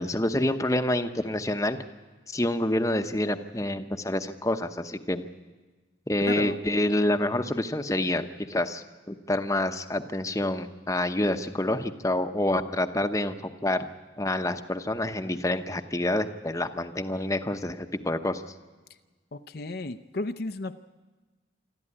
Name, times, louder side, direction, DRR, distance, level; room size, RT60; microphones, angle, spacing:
voice 1, 0.0-1.8 2.3-5.2 6.1-13.9 14.2-18.4, left 1 dB, 15° left, 8 dB, 0.9 m, -27 dB
voice 2, 6.2-6.6 19.3-20.7, left 2 dB, 55° left, 9 dB, 0.6 m, -33 dB
26.0 x 13.0 x 9.9 m, 1.3 s
head